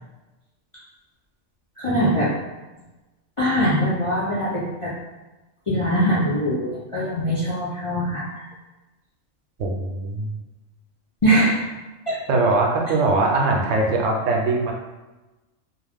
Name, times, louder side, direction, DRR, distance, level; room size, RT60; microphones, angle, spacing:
voice 1, 1.8-2.3 3.4-4.9 5.7-8.4 11.2-11.6 12.1-12.2, equal, 40° left, -9 dB, 0.4 m, -22 dB
voice 2, 9.6-10.4 12.3-14.7, right 2 dB, 75° right, 0 dB, 0.9 m, -21 dB
2.4 x 2.3 x 3.4 m, 1.1 s
omnidirectional pair, 1.3 m